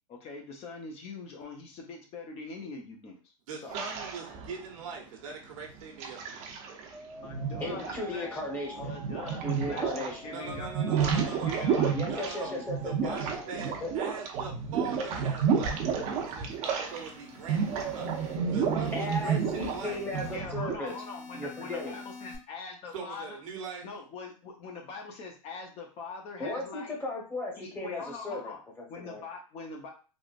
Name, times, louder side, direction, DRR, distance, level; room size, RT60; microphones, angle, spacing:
voice 1, 0.1-3.3 3.6-3.8 7.1-8.4 8.8-10.7 11.1-12.6 20.3-23.2 23.8-27.0 27.6-28.6 28.9-29.9, left 4 dB, 35° left, 1 dB, 0.9 m, -43 dB
voice 2, 3.5-6.5 10.3-11.7 12.1-12.5 12.8-15.8 16.2-18.1 18.5-20.0 22.9-23.9, right 5 dB, 70° right, 1 dB, 1.1 m, -41 dB
sound 1, 3.7-4.8 5.5-6.9 7.2-10.1 10.4-17.1 17.4-20.8, right 6 dB, 40° right, 0.8 m, -31 dB
sound 2, 6.9-14.3, right 2 dB, 5° right, 0.6 m, -47 dB
voice 3, 7.6-8.9 9.4-10.2 11.9-13.2 13.8-13.9 18.9-21.0 21.3-22.0 26.4-29.2, left 2 dB, 10° left, -1 dB, 1.2 m, -36 dB
sound 3, 15.2-16.4 16.9-18.4 18.8-20.4 20.9-22.4, left 4 dB, 65° left, 1.8 m, -49 dB
3.6 x 2.5 x 2.5 m, 0.36 s
hypercardioid pair, 120°, 18 cm